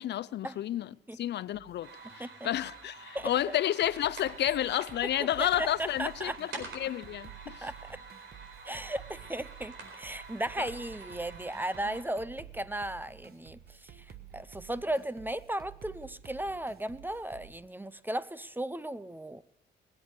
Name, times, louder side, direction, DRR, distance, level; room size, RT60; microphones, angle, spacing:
voice 1, 0.0-7.7 10.6-10.7 11.9-12.0, left 12 dB, 60° left, 0.5 m, -31 dB
sound 1, 1.5-17.5, right 9 dB, 50° right, 1.3 m, -52 dB
sound 2, 1.8-12.0, right 4 dB, 70° right, 4.5 m, -48 dB
voice 2, 2.0-2.5 3.1-3.6 5.4-6.6 7.6-8.0 8.6-19.4, right 1 dB, 10° right, 0.5 m, -36 dB
20.5 x 8.3 x 6.8 m
cardioid pair, 90°, 20 cm